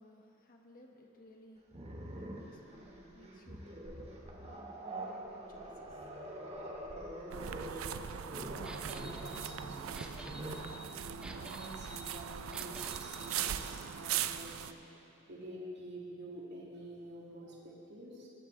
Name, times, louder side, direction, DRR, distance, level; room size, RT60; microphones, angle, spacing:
voice 1, 0.0-1.7 2.1-3.9 4.4-6.0, left 1 dB, 45° left, 1 dB, 1.3 m, -59 dB
Growling, 1.7-10.7 12.1-12.3 12.7-13.9, right 1 dB, 30° right, 1.3 m, -46 dB
voice 2, 6.2-8.0 8.4-18.3, right 1 dB, 60° right, -4 dB, 2.1 m, -49 dB
sound 1, 7.3-14.7, right 9 dB, 85° right, 0.4 m, -40 dB
sound 2, 8.6-13.5, right 1 dB, 5° right, 0.6 m, -51 dB
19.5 x 9.0 x 3.2 m, 2.8 s
head